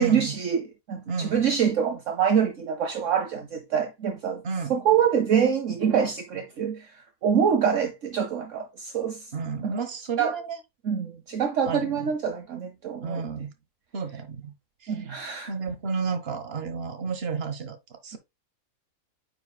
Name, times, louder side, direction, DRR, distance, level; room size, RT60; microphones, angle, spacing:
voice 1, 0.0-4.4 4.7-6.9 7.2-9.3 9.6-9.8 10.2-10.4 10.8-13.4 14.9-15.5, right 7 dB, 60° right, 1.2 m, -25 dB
voice 2, 1.1-1.5 4.4-4.7 9.3-10.6 11.6-12.1 13.0-13.5 13.9-14.5 14.8-15.0 15.5-18.2, right 5 dB, 45° right, 1.4 m, -32 dB
9.1 x 5.2 x 2.2 m
omnidirectional pair, 1.5 m